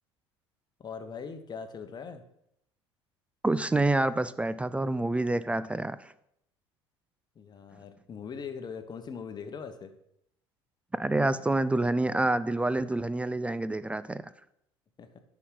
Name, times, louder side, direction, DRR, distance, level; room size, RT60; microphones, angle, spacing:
voice 1, 0.8-2.2 7.3-9.9 15.0-15.1, left 6 dB, 30° left, 8 dB, 1.0 m, -41 dB
voice 2, 3.4-6.1 11.0-14.2, right 2 dB, 10° right, 15 dB, 0.3 m, -27 dB
9.8 x 6.0 x 3.9 m, 0.75 s
figure-of-eight pair, 65°, 14 cm